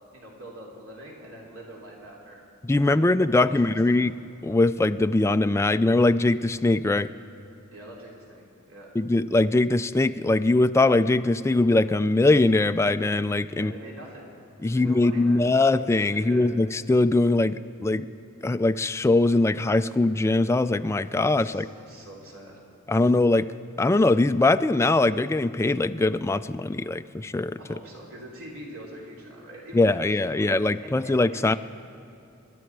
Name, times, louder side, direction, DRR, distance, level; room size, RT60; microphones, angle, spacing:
voice 1, 0.1-2.4 2.7-4.0 7.7-8.9 13.5-14.3 14.6-15.4 16.1-16.5 21.4-22.6 27.6-31.6, right 1 dB, 85° right, -2 dB, 3.3 m, -44 dB
voice 2, 2.6-4.1 4.4-7.1 9.0-13.7 14.6-18.1 18.4-21.7 22.9-23.5 23.8-27.6 29.7-31.6, left 2 dB, 15° left, 11 dB, 0.3 m, -22 dB
27.0 x 11.5 x 4.7 m, 2.7 s
head